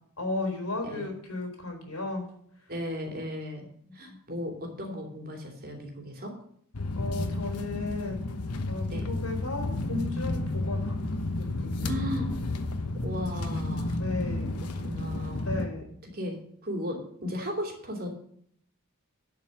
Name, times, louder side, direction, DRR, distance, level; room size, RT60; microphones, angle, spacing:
voice 1, 0.2-2.3 4.0-4.2 7.0-8.2 8.7-11.0 11.4-12.0 14.0-14.5 15.4-15.9, left 2 dB, 70° left, 2 dB, 3.8 m, -34 dB
voice 2, 2.7-3.7 3.9-6.3 8.9-9.1 11.8-12.3 13.0-14.0 14.8-15.6 16.1-16.4 16.6-18.1, equal, 45° right, 2 dB, 2.9 m, -35 dB
sound 1, 6.7-15.7, left 2 dB, 85° left, 1.1 m, -31 dB
12.0 x 5.5 x 7.5 m, 0.65 s
head